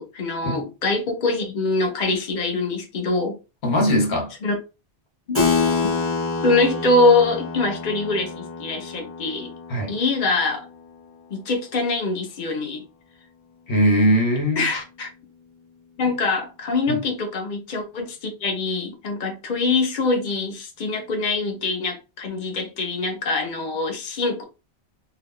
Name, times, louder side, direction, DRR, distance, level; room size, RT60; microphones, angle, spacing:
voice 1, 0.0-3.3 4.4-4.5 5.3-5.4 6.4-9.5 9.9-10.7 11.3-12.8 14.6-15.1 16.0-24.4, left 3 dB, 50° left, 0.9 m, -23 dB
voice 2, 3.6-4.3 9.7-9.9 13.7-14.7 16.9-17.0, equal, 85° left, 1.1 m, -20 dB
Keyboard (musical), 5.3-11.4, left 4 dB, 15° left, 0.9 m, -27 dB
2.7 x 2.3 x 3.5 m
omnidirectional pair, 1.1 m